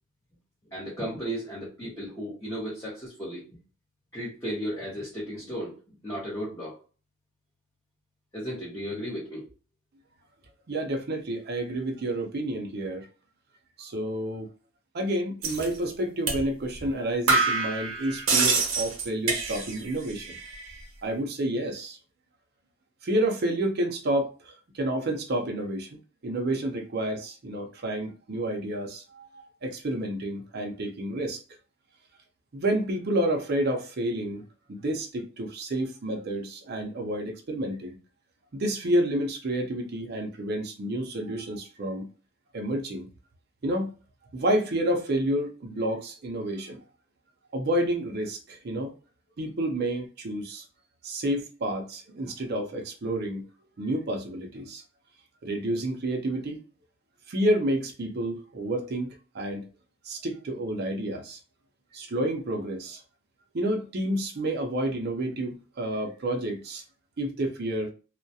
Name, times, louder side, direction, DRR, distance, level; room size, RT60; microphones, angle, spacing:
voice 1, 0.7-3.4 4.1-5.8 6.0-6.8 8.3-9.5, equal, 15° left, 0.8 m, -34 dB
voice 2, 10.7-13.1 13.8-14.5 14.9-20.4 21.0-22.0 23.0-31.4 32.5-34.4 34.7-37.9 38.5-42.1 42.5-43.1 43.6-43.9 44.3-46.8 47.5-48.9 49.4-50.6 51.0-53.5 53.8-54.8 55.4-56.6 57.3-59.7 60.0-61.4 61.9-63.0 63.5-66.8 67.2-67.9, right 1 dB, 50° right, 0.5 m, -29 dB
sound 1, 15.4-15.7 16.3-16.4 16.8-16.9 17.3-19.9 20.2-20.8, right 3 dB, 80° right, 0.7 m, -26 dB
2.3 x 2.0 x 2.6 m
head